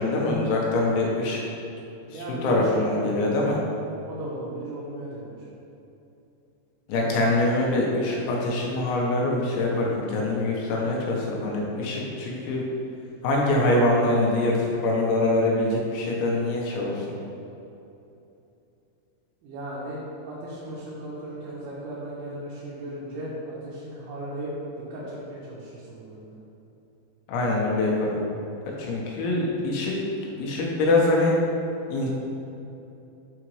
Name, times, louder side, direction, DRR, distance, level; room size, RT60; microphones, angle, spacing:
voice 1, 0.0-1.4 2.1-3.6 6.9-12.6 13.2-17.1 27.3-28.2 28.8-29.9 30.4-31.3 31.9-32.1, left 2 dB, 90° left, -3 dB, 3.3 m, -24 dB
voice 2, 2.0-3.3 4.0-5.5 19.4-26.3, right 1 dB, 85° right, -9 dB, 3.3 m, -36 dB
8.7 x 3.9 x 3.1 m, 2.8 s
omnidirectional pair, 5.2 m